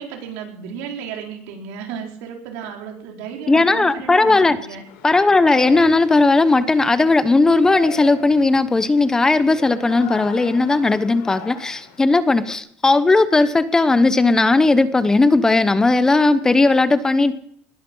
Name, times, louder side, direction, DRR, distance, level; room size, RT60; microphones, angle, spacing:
voice 1, 0.0-4.8, right 7 dB, 85° right, 1 dB, 4.9 m, -33 dB
voice 2, 3.5-4.6 5.0-17.3, left 3 dB, 15° left, 13 dB, 0.9 m, -16 dB
Yell, 4.9-12.6, left 3 dB, 90° left, 4.0 m, -39 dB
20.5 x 12.5 x 5.6 m, 0.67 s
cardioid pair, 135°, 4 cm